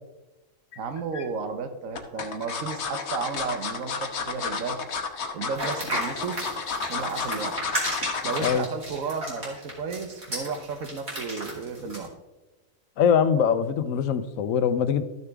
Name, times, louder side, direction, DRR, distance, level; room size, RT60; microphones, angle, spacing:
sound 1, 0.7-1.2 1.9-8.7 9.1-9.3 9.6-9.7, left 5 dB, 60° left, 1.2 m, -31 dB
voice 1, 0.8-4.8 5.3-6.4 6.9-7.6 8.2-12.1, right 5 dB, 85° right, 8 dB, 1.3 m, -33 dB
sound 2, 5.6-12.1, right 1 dB, 55° right, 3.0 m, -33 dB
voice 2, 13.0-15.0, left 7 dB, 80° left, 12 dB, 1.0 m, -22 dB
13.5 x 6.7 x 3.5 m, 1.1 s
omnidirectional pair, 1.4 m